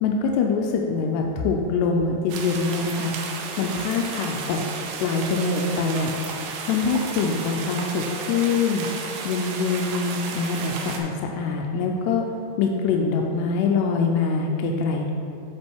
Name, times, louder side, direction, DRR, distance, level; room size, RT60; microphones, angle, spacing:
voice 1, 0.0-3.1 3.6-4.6 5.0-6.1 6.7-8.9 9.3-12.2 12.6-15.1, left 4 dB, 85° left, 1 dB, 2.7 m, -24 dB
sound 1, 2.3-11.0, right 4 dB, 80° right, 2.3 m, -33 dB
10.5 x 3.8 x 4.5 m, 2.8 s
omnidirectional pair, 4.8 m